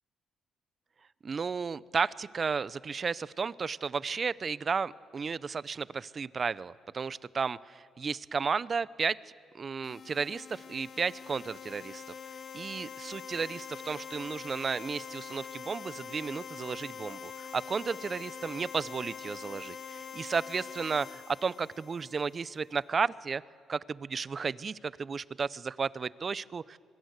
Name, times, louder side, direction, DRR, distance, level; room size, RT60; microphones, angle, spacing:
voice 1, 1.2-9.2 9.5-12.0 12.5-23.4 23.7-26.8, right 5 dB, 40° right, 19 dB, 0.6 m, -33 dB
Preset Synth-Reed C, 9.8-22.5, left 7 dB, 55° left, 1.0 m, -44 dB
23.5 x 23.5 x 8.1 m, 2.1 s
cardioid pair, 90°, 0 cm